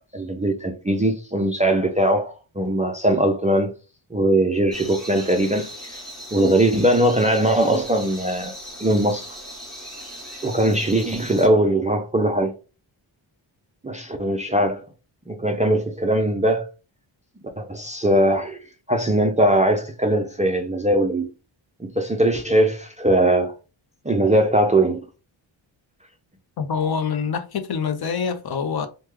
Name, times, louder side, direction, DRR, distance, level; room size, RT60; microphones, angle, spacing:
voice 1, 0.1-3.7 4.1-6.0 6.3-8.5 8.8-9.3 10.4-12.5 13.8-14.8 15.3-16.7 17.6-18.6 18.9-21.3 21.8-23.5 24.0-25.1, right 1 dB, 15° right, 0.3 m, -20 dB
sound 1, 4.7-11.5, right 1 dB, ahead, 1.1 m, -38 dB
voice 2, 26.6-28.9, left 6 dB, 55° left, 0.6 m, -25 dB
3.3 x 2.2 x 3.1 m
wide cardioid pair, 150°, 47 cm